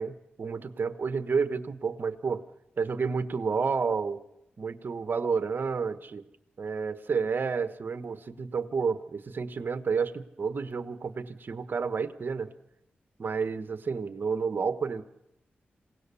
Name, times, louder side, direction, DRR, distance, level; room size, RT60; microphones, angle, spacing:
voice 1, 0.0-2.4 2.8-4.2 4.6-6.2 6.6-12.5 13.2-15.0, right 5 dB, 60° right, 10 dB, 1.3 m, -30 dB
27.5 x 17.5 x 7.0 m, 0.87 s
cardioid pair, 80°, 4 cm